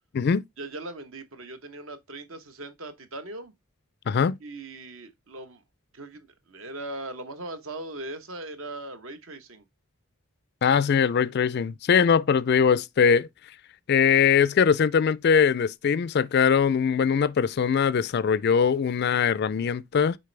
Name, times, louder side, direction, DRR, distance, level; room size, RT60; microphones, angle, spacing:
voice 1, 0.6-3.5 4.4-5.6 5.9-9.6, right 2 dB, 60° right, 1.0 m, -39 dB
voice 2, 10.6-13.3 13.9-20.2, left 6 dB, 45° left, 0.3 m, -21 dB
6.7 x 4.3 x 3.3 m
head